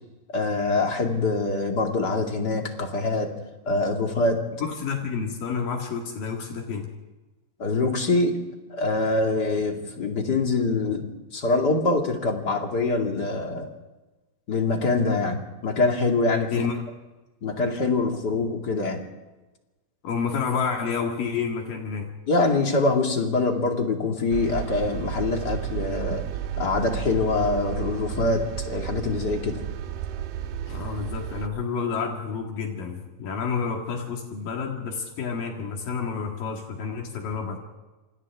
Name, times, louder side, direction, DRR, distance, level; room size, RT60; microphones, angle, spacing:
voice 1, 0.3-3.3 3.7-4.4 7.6-8.4 8.7-13.7 14.5-16.5 17.4-19.0 22.3-26.2 26.6-29.6, left 3 dB, 30° left, 2 dB, 2.5 m, -24 dB
voice 2, 4.6-6.9 16.5-16.8 20.0-22.1 30.7-37.6, left 6 dB, 75° left, 1 dB, 3.7 m, -29 dB
sound 1, 24.3-31.5, right 11 dB, 75° right, 2.4 m, -32 dB
28.0 x 26.0 x 3.6 m, 1.1 s
omnidirectional pair, 4.0 m